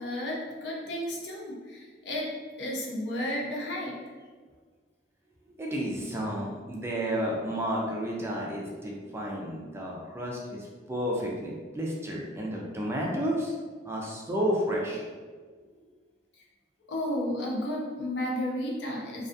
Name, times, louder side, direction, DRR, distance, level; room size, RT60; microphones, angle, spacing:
voice 1, 0.0-2.3 2.6-3.9 16.9-19.3, left 1 dB, 65° left, -3 dB, 0.6 m, -32 dB
voice 2, 5.6-13.5 13.8-15.0, equal, 15° right, -3 dB, 0.3 m, -31 dB
2.3 x 2.3 x 2.5 m, 1.5 s
head